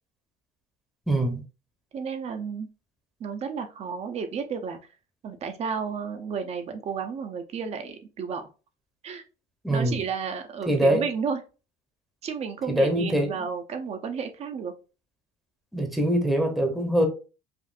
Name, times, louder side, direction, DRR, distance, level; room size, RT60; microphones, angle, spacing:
voice 1, 1.1-1.4 9.6-10.0 10.7-11.0 12.7-13.4 15.7-17.1, right 1 dB, ahead, 3 dB, 0.8 m, -23 dB
voice 2, 1.9-2.7 3.2-4.8 5.2-8.5 9.0-9.2 9.7-11.4 12.2-14.7, right 6 dB, 40° right, 7 dB, 0.6 m, -32 dB
5.1 x 2.5 x 2.5 m, 0.32 s
cardioid pair, 130°, 17 cm